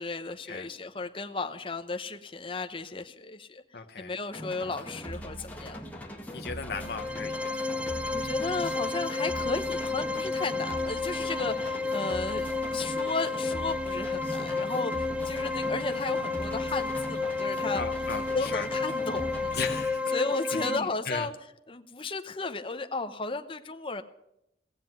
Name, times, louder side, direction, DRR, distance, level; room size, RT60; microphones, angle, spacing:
voice 1, 0.0-3.6 4.0-5.8 8.1-17.8 18.3-19.5 20.1-21.3 21.7-24.0, left 3 dB, 30° left, 7 dB, 0.8 m, -34 dB
voice 2, 3.7-4.1 6.3-7.6 17.7-18.7 19.5-20.0 20.5-21.3, left 5 dB, 55° left, 4 dB, 0.9 m, -36 dB
sound 1, 4.3-19.9, equal, 10° left, 1.7 m, -41 dB
sound 2, 6.7-20.8, left 3 dB, 5° right, 0.5 m, -31 dB
17.5 x 7.6 x 9.1 m, 0.84 s
head